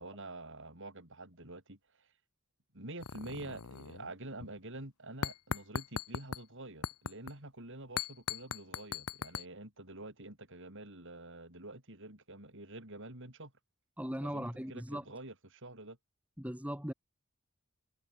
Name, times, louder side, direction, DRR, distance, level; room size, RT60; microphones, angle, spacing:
voice 1, 0.0-2.1 2.7-13.5 14.2-16.0, right 2 dB, 60° right, 7.3 m, -47 dB
sound 1, 3.0-4.1 4.4-4.6 5.2-6.4 6.8-7.3 8.0-9.4, left 6 dB, 85° left, 0.9 m, -39 dB
voice 2, 14.0-15.0 16.4-16.9, equal, 5° right, 5.0 m, -38 dB
head